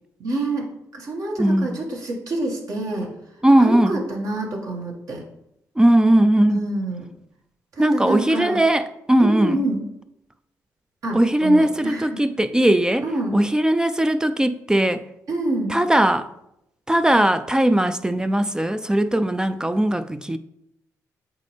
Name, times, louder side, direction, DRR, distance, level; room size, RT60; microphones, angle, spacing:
voice 1, 0.2-3.1 3.6-5.2 6.5-7.1 7.7-8.6 9.2-9.8 11.0-12.2 13.0-13.4 15.3-15.8, right 2 dB, 60° right, 1.7 m, -27 dB
voice 2, 1.4-1.8 3.4-4.0 5.8-6.7 7.8-9.6 11.1-13.0 13.3-15.0 15.7-16.3 16.9-20.4, right 1 dB, 10° right, 0.3 m, -19 dB
8.1 x 4.2 x 3.3 m
cardioid pair, 75°, 7 cm